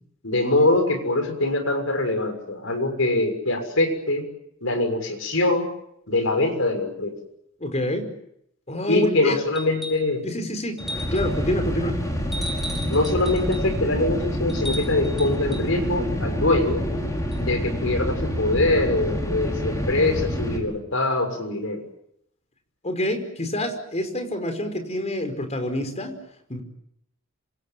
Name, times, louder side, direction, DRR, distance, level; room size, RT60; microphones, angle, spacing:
voice 1, 0.2-4.3 4.6-5.7 6.1-7.1 8.9-10.2 12.9-16.8 17.4-21.8, left 2 dB, 75° left, 7 dB, 6.6 m, -23 dB
voice 2, 7.6-8.1 8.7-9.3 10.2-10.8 11.1-12.0 22.8-26.2 26.5-26.6, left 1 dB, 35° left, 7 dB, 5.3 m, -26 dB
sound 1, 9.6-10.1 10.8-11.4 12.3-13.7 14.5-15.7 17.3-17.4, equal, ahead, 6.5 m, -36 dB
sound 2, 10.8-20.6, equal, 15° left, 5.7 m, -27 dB
27.0 x 26.0 x 7.7 m, 0.75 s
head